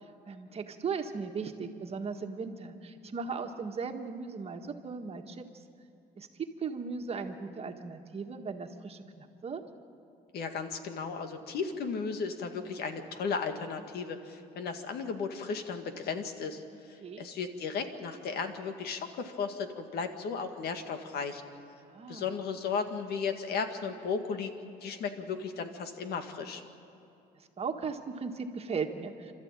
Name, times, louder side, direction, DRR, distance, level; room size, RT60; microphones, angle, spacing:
voice 1, 0.0-5.5 6.2-9.6 17.0-17.2 21.9-22.3 27.4-29.3, right 5 dB, 35° right, 5 dB, 1.7 m, -37 dB
voice 2, 10.3-21.4 22.1-24.5 24.8-26.6, left 5 dB, 70° left, 7 dB, 1.9 m, -35 dB
29.0 x 13.0 x 8.9 m, 2.8 s
cardioid pair, 110°, 17 cm